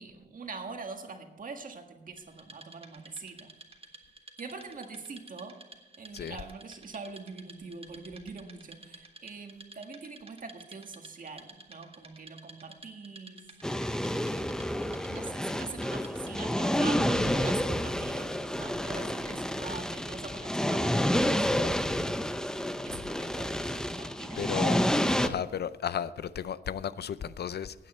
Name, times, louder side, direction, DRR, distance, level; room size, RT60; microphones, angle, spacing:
voice 1, 0.0-3.5 4.4-5.6 6.0-13.5 15.1-21.8 22.8-24.6, right 4 dB, 50° right, 1.7 m, -44 dB
Wood, 2.2-16.7, right 2 dB, 35° right, 1.4 m, -53 dB
sound 1, 13.6-25.3, equal, 5° left, 0.6 m, -29 dB
voice 2, 24.4-27.7, left 8 dB, 75° left, 0.5 m, -34 dB
16.0 x 9.2 x 4.3 m
wide cardioid pair, 135°, 17 cm